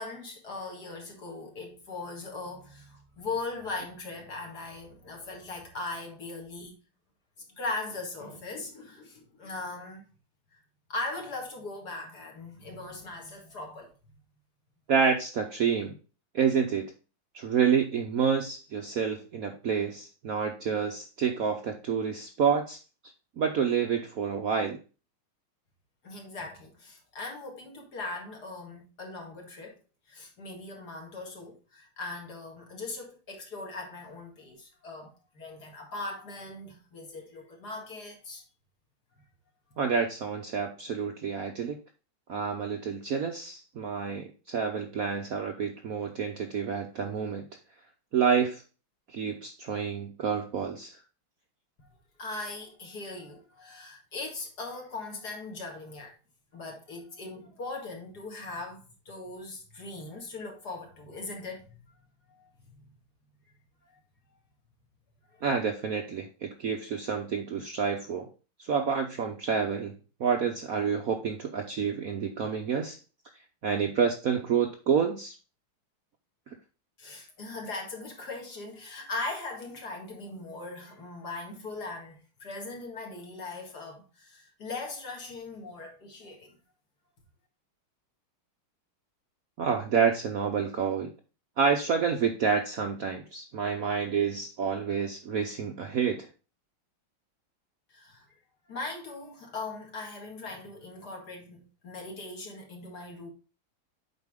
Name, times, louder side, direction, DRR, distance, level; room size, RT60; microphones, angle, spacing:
voice 1, 0.0-6.7 7.5-10.1 10.9-13.9 26.0-29.8 30.1-38.4 51.8-51.9 52.2-56.1 56.5-61.8 62.3-62.8 63.8-64.0 65.3-65.4 77.0-86.6 97.9-98.3 98.7-103.3, left 3 dB, 50° left, 2.4 m, -39 dB
voice 2, 14.9-15.9 16.3-16.9 17.3-22.8 23.4-24.8 39.8-41.8 42.3-47.4 48.1-48.6 49.1-50.9 65.4-68.3 68.6-69.9 70.2-73.0 73.6-75.3 89.6-91.1 91.6-96.3, right 6 dB, 60° right, 1.0 m, -28 dB
8.1 x 4.9 x 3.5 m
omnidirectional pair, 2.3 m